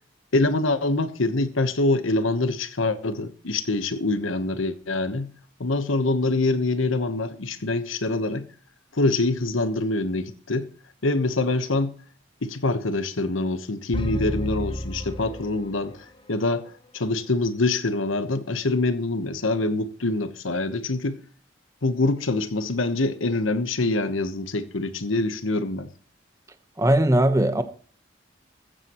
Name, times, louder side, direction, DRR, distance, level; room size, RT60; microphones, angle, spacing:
voice 1, 0.3-5.3 5.6-8.5 8.9-10.7 11.0-12.0 12.4-15.9 16.3-16.7 16.9-21.2 21.8-25.9, left 2 dB, 85° left, 1.1 m, -25 dB
sound 1, 13.9-16.0, equal, 25° left, 1.0 m, -31 dB
voice 2, 26.8-27.6, right 1 dB, 15° right, 1.1 m, -19 dB
15.0 x 14.5 x 3.1 m
head